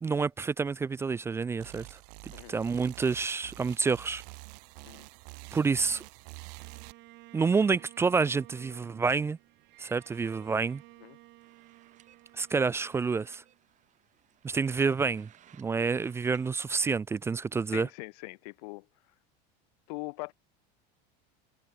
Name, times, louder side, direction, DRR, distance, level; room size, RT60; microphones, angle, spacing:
voice 1, 0.0-4.2 5.5-6.0 7.3-9.4 9.8-10.8 12.4-13.4 14.4-15.3 15.6-17.9, right 5 dB, 10° right, 0.3 m, -28 dB
sound 1, 1.6-6.9, right 30 dB, 70° right, 1.3 m, -47 dB
Bowed string instrument, 6.6-13.9, right 21 dB, 55° right, 6.9 m, -55 dB
sound 2, 11.4-16.5, right 11 dB, 35° right, 5.7 m, -62 dB
voice 2, 17.7-18.8 19.9-20.3, left 28 dB, 75° left, 1.5 m, -41 dB
supercardioid pair, 140°, 21 cm